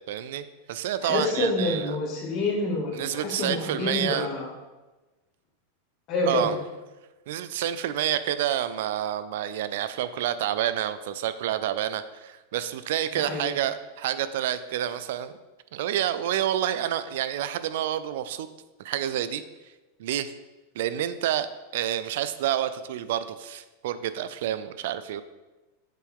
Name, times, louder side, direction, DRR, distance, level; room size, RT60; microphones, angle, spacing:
voice 1, 0.1-1.9 2.9-4.3 6.3-6.5 7.3-15.3 15.7-18.5 18.8-19.4 20.0-20.3 20.8-21.5 21.7-25.2, right 11 dB, 70° right, 13 dB, 0.3 m, -28 dB
voice 2, 1.0-4.5 6.1-6.5 13.1-13.5, left 2 dB, 40° left, -3 dB, 2.0 m, -27 dB
7.4 x 4.5 x 3.6 m, 1.1 s
supercardioid pair, 130°, 0 cm